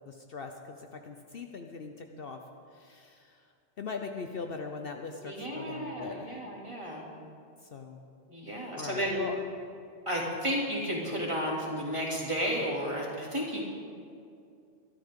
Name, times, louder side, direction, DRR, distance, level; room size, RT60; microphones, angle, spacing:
voice 1, 0.1-2.4 2.7-3.4 3.8-6.5 7.7-8.0 8.6-9.4, left 4 dB, 55° left, 4 dB, 0.9 m, -41 dB
voice 2, 5.2-7.0 8.3-9.3 10.1-13.6, equal, 25° right, -4 dB, 2.9 m, -32 dB
22.0 x 13.0 x 3.7 m, 2.4 s
omnidirectional pair, 1.2 m